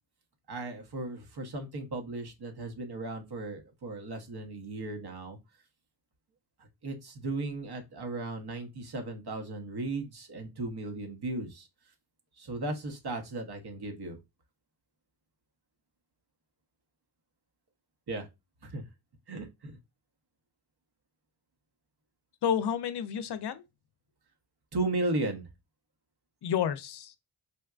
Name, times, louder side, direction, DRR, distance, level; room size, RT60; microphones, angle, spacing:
voice 1, 0.5-5.4 6.8-11.7 12.4-14.2 18.1-18.3 18.6-18.8 19.3-19.7 24.7-25.5, right 2 dB, 55° right, 1.0 m, -36 dB
voice 2, 22.4-23.6 26.4-27.2, left 8 dB, 60° left, 0.6 m, -30 dB
4.3 x 2.2 x 2.4 m
cardioid pair, 45°, 46 cm